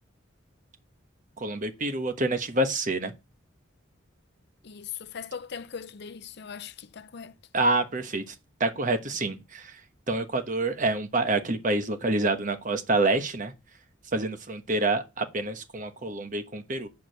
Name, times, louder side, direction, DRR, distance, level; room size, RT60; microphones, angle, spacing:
voice 1, 1.4-3.1 7.5-8.3 8.6-9.8 10.1-13.5 14.1-16.9, right 2 dB, 40° right, 1.1 m, -27 dB
voice 2, 4.6-7.4, left 7 dB, 55° left, 0.6 m, -40 dB
8.4 x 4.7 x 6.7 m
head